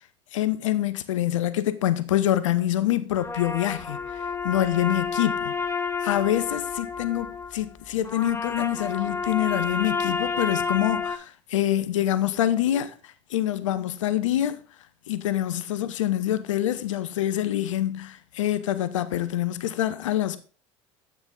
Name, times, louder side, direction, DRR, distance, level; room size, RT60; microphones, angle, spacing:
voice 1, 0.3-5.5 6.0-14.6 15.1-20.4, left 12 dB, 80° left, 0.7 m, -26 dB
sound 1, 3.2-11.2, left 5 dB, 15° left, 0.9 m, -30 dB
8.8 x 6.0 x 3.7 m
hypercardioid pair, 70°, 16 cm